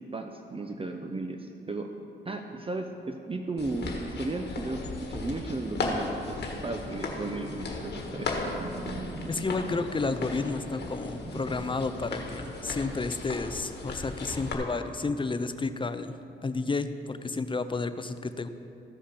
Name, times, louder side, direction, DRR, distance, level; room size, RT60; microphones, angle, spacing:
voice 1, 0.1-1.9 2.2-6.4 6.6-8.4, right 2 dB, 30° right, 5 dB, 0.7 m, -35 dB
sound 1, 3.6-14.5, left 3 dB, 60° left, 1.4 m, -36 dB
sound 2, 5.5-13.0, right 3 dB, 65° right, 1.1 m, -45 dB
voice 2, 9.3-16.2 16.4-18.5, left 3 dB, 25° left, 11 dB, 0.5 m, -31 dB
14.5 x 4.9 x 5.8 m, 2.7 s
cardioid pair, 65°, 19 cm